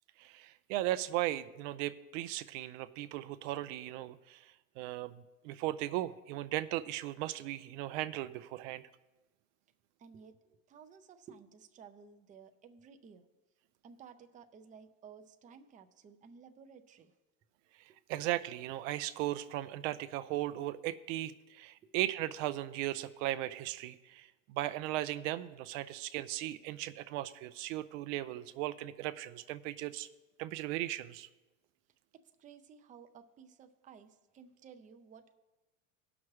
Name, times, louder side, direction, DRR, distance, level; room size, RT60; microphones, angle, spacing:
voice 1, 0.2-5.2 5.4-8.8 18.1-30.1 30.4-31.3, right 15 dB, 65° right, 13 dB, 0.5 m, -37 dB
voice 2, 10.0-13.3 13.8-17.1 17.9-18.0 21.8-21.9 32.1-35.3, right 6 dB, 20° right, 7 dB, 0.5 m, -55 dB
17.0 x 6.0 x 3.2 m, 1.1 s
supercardioid pair, 125°, 40 cm